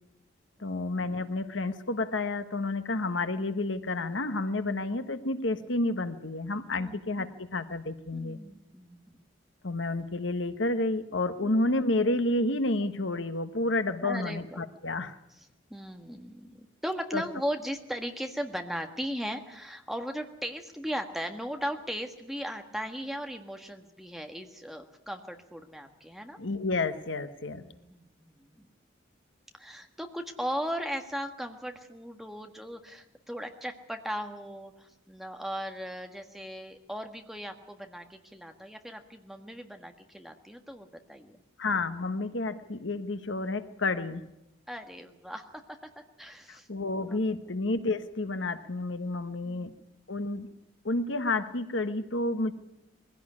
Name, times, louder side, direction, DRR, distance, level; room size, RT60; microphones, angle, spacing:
voice 1, 0.6-8.4 9.6-15.1 17.1-17.2 26.4-27.6 41.6-44.2 46.5-49.7 50.1-50.5 50.8-52.5, left 2 dB, 75° left, 11 dB, 1.2 m, -30 dB
voice 2, 6.8-7.1 8.1-9.2 11.4-11.6 14.0-14.4 15.7-26.4 27.6-28.7 29.5-41.4 44.7-46.7 47.0-47.2 49.4-49.9, equal, ahead, 4 dB, 1.5 m, -38 dB
21.5 x 16.5 x 9.8 m, 0.88 s
head